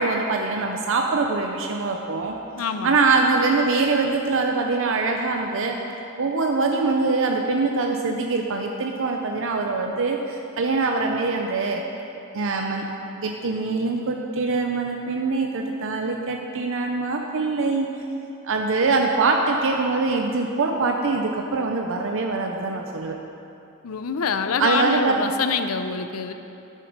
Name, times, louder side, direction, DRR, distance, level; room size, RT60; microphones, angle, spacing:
voice 1, 0.0-5.8 6.2-11.8 12.3-12.9 13.2-17.9 18.4-23.2 24.6-25.2, right 3 dB, 65° right, 3 dB, 0.6 m, -23 dB
voice 2, 2.6-3.0 23.8-26.3, left 6 dB, 75° left, 9 dB, 0.6 m, -26 dB
10.0 x 7.5 x 5.2 m, 2.8 s
head